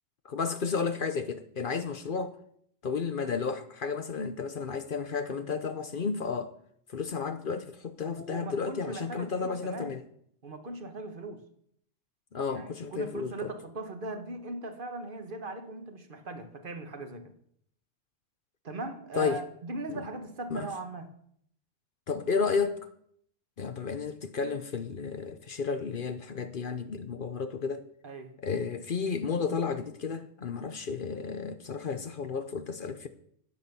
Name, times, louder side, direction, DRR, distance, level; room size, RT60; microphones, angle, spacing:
voice 1, 0.2-2.3 2.8-6.5 6.9-10.0 12.3-13.5 19.1-19.4 19.9-20.1 20.5-20.7 22.1-22.8 23.6-27.9 28.4-33.1, left 5 dB, 50° left, 0.8 m, -32 dB
voice 2, 8.1-9.9 10.4-11.4 12.5-17.3 18.6-21.1 23.8-23.9 28.0-28.3, right 2 dB, 45° right, 1.4 m, -39 dB
10.5 x 8.2 x 6.9 m
omnidirectional pair, 1.3 m